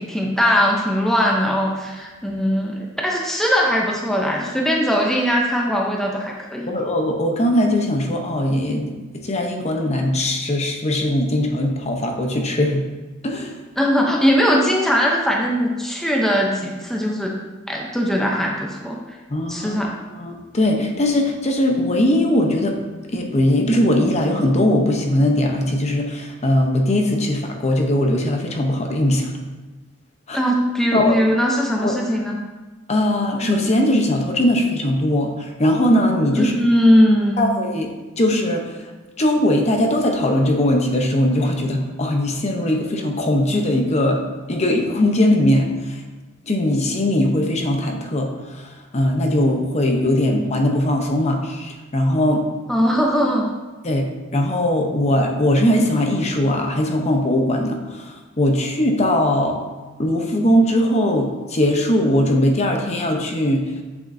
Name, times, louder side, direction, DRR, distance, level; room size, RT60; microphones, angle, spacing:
voice 1, 0.0-6.7 13.8-17.3 17.7-19.0 19.5-19.9 30.3-32.4 36.3-37.5 52.7-53.5, equal, ahead, -1 dB, 0.6 m, -20 dB
voice 2, 6.7-12.9 13.2-13.6 19.3-19.8 20.1-22.8 23.1-29.3 30.3-30.4 30.9-31.2 31.8-31.9 32.9-36.5 37.4-37.9 38.2-38.7 39.2-44.2 44.5-46.0 46.5-52.5 53.8-59.6 60.0-63.7, left 1 dB, 35° left, 2 dB, 0.8 m, -20 dB
7.7 x 7.2 x 2.7 m, 1.2 s
head